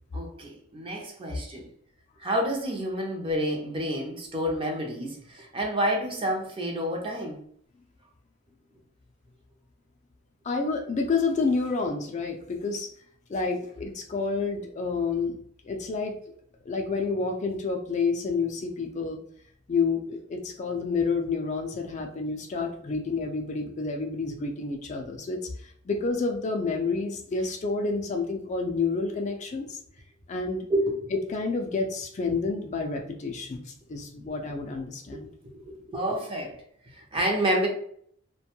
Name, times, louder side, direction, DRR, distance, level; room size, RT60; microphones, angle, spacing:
voice 1, 0.1-1.6 2.2-7.4 30.7-31.0 35.1-36.6 36.9-37.7, right 1 dB, 25° right, 1 dB, 0.5 m, -29 dB
voice 2, 10.4-12.9 13.3-15.4 15.6-16.2 16.6-19.2 19.7-29.8 30.3-30.7 31.1-35.3, left 4 dB, 35° left, 3 dB, 0.3 m, -29 dB
2.5 x 2.2 x 2.9 m, 0.63 s
head